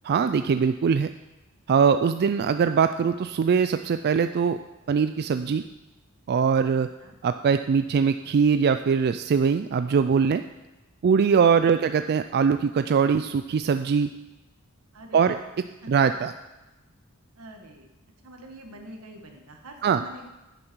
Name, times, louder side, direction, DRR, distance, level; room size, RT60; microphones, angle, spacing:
voice 1, 0.0-1.1 1.7-4.6 4.9-5.6 6.3-6.9 7.2-10.4 11.0-14.1 15.1-15.4 15.9-16.3 19.8-20.0, right 6 dB, 45° right, 9 dB, 0.3 m, -22 dB
voice 2, 14.9-15.4 15.8-15.9 17.4-17.9 18.2-20.3, right 1 dB, 85° right, 3 dB, 1.6 m, -45 dB
9.9 x 9.7 x 4.6 m, 1.0 s
head